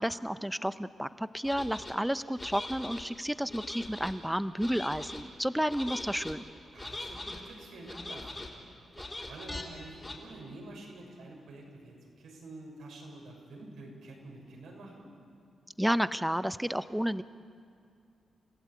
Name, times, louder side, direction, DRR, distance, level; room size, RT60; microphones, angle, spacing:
voice 1, 0.0-6.5 15.8-17.2, equal, 5° right, 13 dB, 0.6 m, -31 dB
sound 1, 1.4-1.9 2.4-3.0 3.5-4.1 4.6-5.2 5.7-6.3 6.8-7.4 7.8-8.5 8.9-9.6 10.0-10.1, left 2 dB, 20° left, 4.1 m, -41 dB
voice 2, 6.7-8.5 9.0-15.1, right 2 dB, 85° right, 0 dB, 6.2 m, -48 dB
30.0 x 16.0 x 8.6 m, 2.4 s
cardioid pair, 100°, 0 cm